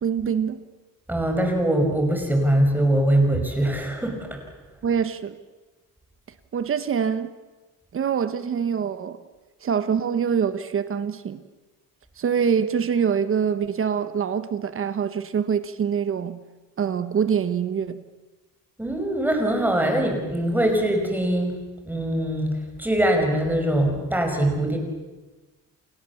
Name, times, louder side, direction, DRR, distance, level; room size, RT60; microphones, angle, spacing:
voice 1, 0.0-0.6 4.8-5.4 6.5-7.3 7.9-9.2 9.6-11.4 12.2-16.4 16.8-18.0, right 7 dB, 35° right, 1.3 m, -24 dB
voice 2, 1.1-4.4 18.8-21.6 21.9-24.8, right 1 dB, 5° right, 5.5 m, -22 dB
30.0 x 27.5 x 7.2 m
cardioid pair, 165°, 35 cm